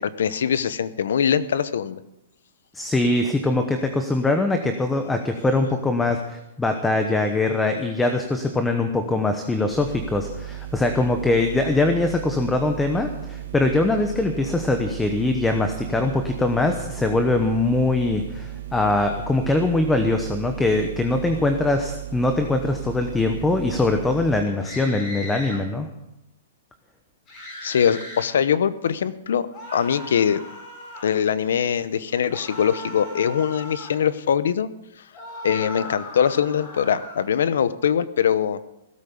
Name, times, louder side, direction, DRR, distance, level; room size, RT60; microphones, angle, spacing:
voice 1, 0.0-2.0 27.6-29.5 29.7-30.4 31.0-34.7 35.4-38.7, left 8 dB, 75° left, 15 dB, 0.9 m, -22 dB
voice 2, 2.7-25.9, left 2 dB, 5° left, 6 dB, 0.9 m, -22 dB
sound 1, 9.7-24.4, right 14 dB, 65° right, 4.1 m, -36 dB
sound 2, 24.6-25.6 27.3-28.3 29.5-31.1 32.3-34.0 35.1-37.3, left 1 dB, 25° left, 7.0 m, -38 dB
17.0 x 8.5 x 7.0 m, 0.89 s
hypercardioid pair, 160°, 0 cm